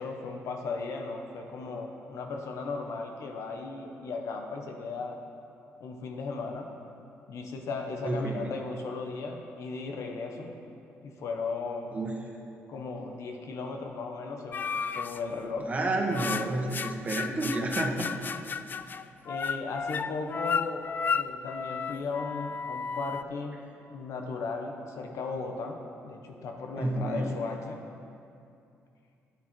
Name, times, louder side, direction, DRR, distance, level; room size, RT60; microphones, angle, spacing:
voice 1, 0.0-5.2 5.8-6.7 7.3-10.5 11.0-12.0 12.7-15.7 19.2-23.6 23.9-27.8, left 4 dB, 75° left, 3 dB, 1.3 m, -36 dB
voice 2, 8.0-8.5 11.9-12.2 15.6-18.1 26.7-27.3, right 2 dB, 30° right, 0 dB, 1.8 m, -30 dB
sound 1, 14.5-15.2 15.7-23.2, left 6 dB, 40° left, 0.3 m, -33 dB
13.0 x 9.4 x 4.6 m, 2.6 s
cardioid pair, 100°, 5 cm